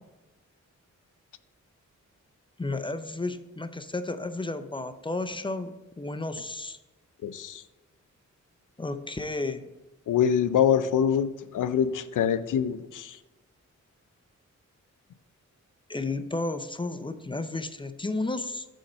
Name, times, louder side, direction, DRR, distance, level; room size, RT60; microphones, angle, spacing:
voice 1, 2.6-6.8 8.8-9.6 15.9-18.7, left 2 dB, 15° left, 9 dB, 0.4 m, -32 dB
voice 2, 7.2-7.6 10.1-13.2, left 8 dB, 75° left, 13 dB, 0.5 m, -25 dB
6.5 x 4.3 x 5.4 m, 1.1 s
wide cardioid pair, 85°, 31 cm